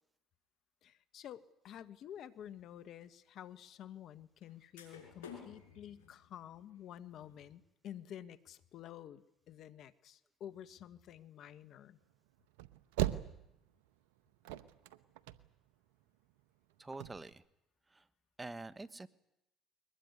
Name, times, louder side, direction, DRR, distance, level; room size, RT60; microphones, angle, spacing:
voice 1, 0.8-12.0, left 10 dB, 60° left, 14 dB, 1.5 m, -50 dB
sound 1, 2.5-2.6 4.4-4.5 4.8-7.5, left 7 dB, 90° left, 5.7 m, -53 dB
sound 2, 12.5-13.9 14.2-15.7 16.0-16.1 16.3-16.4 16.8-17.3, right 14 dB, 85° right, 1.1 m, -38 dB
voice 2, 16.8-17.4 17.9-18.0 18.4-19.1, right 2 dB, 20° right, 16 dB, 1.5 m, -46 dB
22.0 x 20.5 x 9.7 m, 0.84 s
hypercardioid pair, 70°, 0 cm